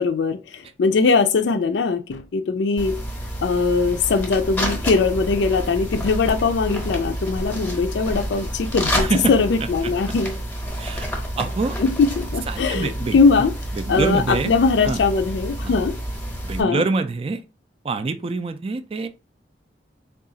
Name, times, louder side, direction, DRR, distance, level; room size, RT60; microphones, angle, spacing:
voice 1, 0.0-3.0 3.4-10.4 11.8-13.5 13.9-15.9 16.6-16.8, left 4 dB, 75° left, 0.4 m, -20 dB
sound 1, 2.8-16.6, equal, 10° left, 0.8 m, -29 dB
voice 2, 8.9-9.3 9.6-9.9 10.8-11.1 11.4-11.8 12.5-13.2 13.7-14.5 14.8-15.0 16.4-17.4 17.8-19.1, right 3 dB, 30° right, 0.3 m, -25 dB
3.7 x 2.3 x 3.8 m
head